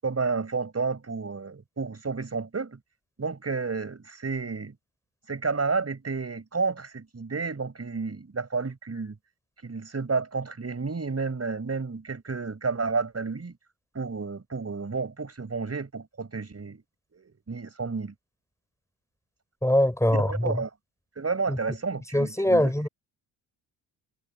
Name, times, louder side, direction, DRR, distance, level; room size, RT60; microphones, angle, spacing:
voice 1, 0.0-2.8 3.2-4.8 5.3-9.2 9.6-13.6 13.9-16.8 17.1-18.1 20.1-20.7 21.2-22.7, right 4 dB, 35° right, 6.4 m, -31 dB
voice 2, 19.6-20.6 21.5-21.6 22.1-22.9, left 1 dB, 5° left, 6.0 m, -23 dB
supercardioid pair, 60°, 45 cm